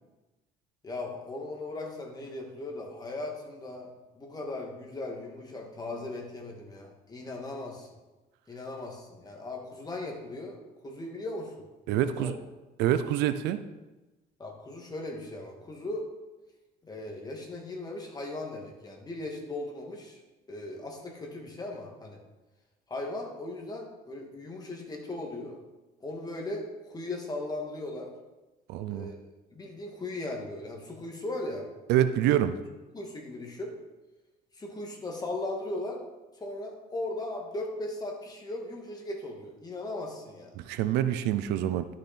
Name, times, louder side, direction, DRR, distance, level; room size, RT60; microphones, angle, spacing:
voice 1, 0.8-7.9 8.5-10.6 10.8-11.5 11.9-12.3 14.4-16.1 16.8-20.2 20.5-22.2 22.9-25.6 26.0-28.1 28.9-29.2 29.5-31.7 32.9-33.7 34.5-36.0 36.4-40.5, left 2 dB, 25° left, 0 dB, 2.1 m, -38 dB
voice 2, 11.9-12.4 12.8-13.6 28.7-29.1 31.9-32.5 40.6-41.9, right 11 dB, 90° right, 12 dB, 0.5 m, -26 dB
11.5 x 6.4 x 4.4 m, 1.1 s
cardioid pair, 110°, 17 cm